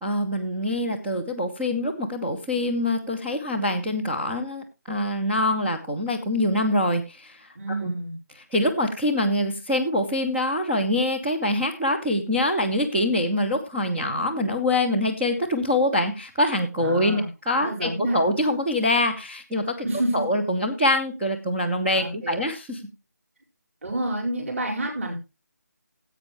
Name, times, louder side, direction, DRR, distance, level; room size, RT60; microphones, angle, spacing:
voice 1, 0.0-7.4 7.8-7.9 8.5-19.9 20.1-22.8, left 1 dB, 5° right, -3 dB, 0.5 m, -24 dB
voice 2, 7.5-8.2 16.8-17.3 17.5-18.2 19.8-20.1 21.9-22.4 23.8-25.1, right 1 dB, 50° right, -2 dB, 4.8 m, -28 dB
16.0 x 8.1 x 3.1 m, 0.26 s
figure-of-eight pair, 160°, 10 cm